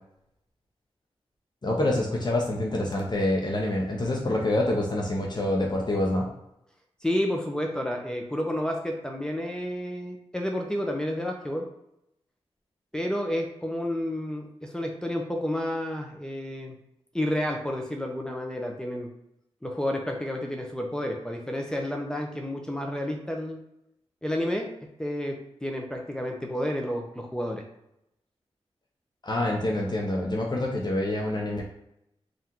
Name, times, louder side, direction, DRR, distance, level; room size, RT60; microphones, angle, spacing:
voice 1, 1.6-6.3 29.2-31.6, left 1 dB, 40° left, -1 dB, 0.8 m, -26 dB
voice 2, 7.0-11.7 12.9-16.8 17.1-19.1 19.6-23.6 24.2-24.7 25.0-27.6, left 1 dB, 5° left, 1 dB, 0.7 m, -30 dB
3.7 x 2.5 x 4.4 m, 0.81 s
cardioid pair, 50°, 11 cm